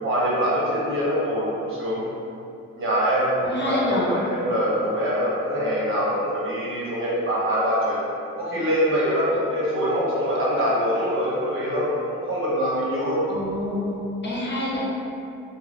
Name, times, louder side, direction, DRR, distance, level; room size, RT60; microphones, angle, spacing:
voice 1, 0.0-2.0 2.7-8.0 8.4-13.2, equal, 40° right, -7 dB, 1.2 m, -24 dB
voice 2, 3.4-4.1 9.3-9.4 13.3-14.8, left 1 dB, 30° left, -7 dB, 1.0 m, -28 dB
4.8 x 2.2 x 2.5 m, 2.7 s
hypercardioid pair, 50°, 33 cm